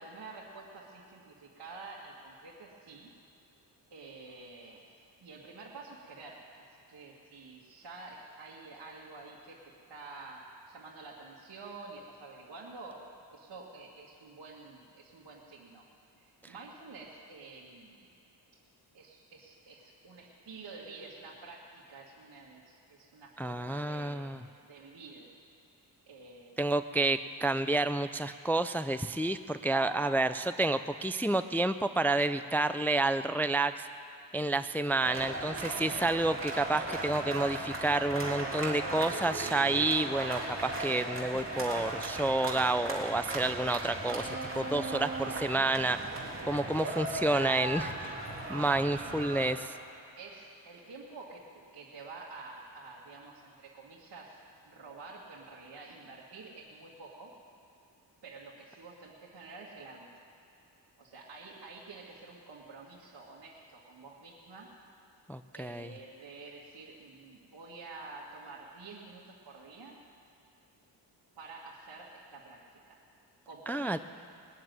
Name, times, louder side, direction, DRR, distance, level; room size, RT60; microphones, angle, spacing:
voice 1, 0.0-3.1 3.9-4.9 5.2-9.6 9.9-15.9 16.1-18.0 18.9-25.3 26.1-26.5 29.6-30.5 32.3-32.5 34.5-34.7 46.5-47.0 48.2-48.9 50.2-54.4 54.7-57.3 58.2-60.1 61.0-64.7 65.5-70.0 71.4-73.0 73.5-74.0, right 3 dB, 60° right, -6 dB, 2.1 m, -49 dB
voice 2, 23.4-24.4 26.6-33.9 34.3-46.0 46.4-48.1 48.5-49.8 65.3-65.9 73.7-74.0, right 2 dB, 5° left, 10 dB, 0.4 m, -30 dB
sound 1, 35.0-49.5, right 2 dB, 30° right, 3.1 m, -37 dB
20.5 x 7.5 x 9.4 m, 2.7 s
cardioid pair, 85°, 44 cm